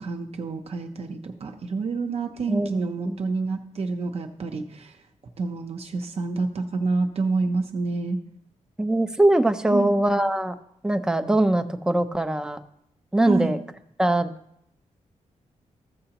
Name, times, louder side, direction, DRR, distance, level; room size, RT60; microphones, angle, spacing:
voice 1, 0.0-5.0 5.4-8.2 9.7-9.9 13.3-13.5, right 3 dB, 50° right, 3 dB, 0.7 m, -28 dB
voice 2, 2.5-3.2 8.8-10.6 10.8-12.6 13.1-13.6 14.0-14.3, right 1 dB, 5° right, 8 dB, 0.5 m, -22 dB
14.5 x 6.6 x 2.9 m, 0.75 s
wide cardioid pair, 130°, 13 cm